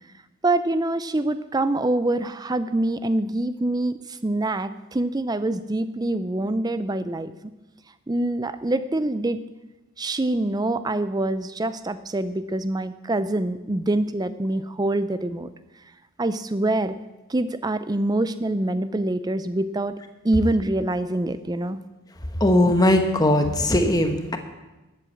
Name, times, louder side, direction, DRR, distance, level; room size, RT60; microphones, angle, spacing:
voice 1, 0.4-7.3 8.1-9.4 10.0-15.5 16.2-17.0 17.3-20.0 20.2-21.8, right 2 dB, 20° right, 13 dB, 0.4 m, -25 dB
voice 2, 22.4-24.4, left 1 dB, 15° left, 6 dB, 1.0 m, -19 dB
12.5 x 8.1 x 7.3 m, 1.1 s
head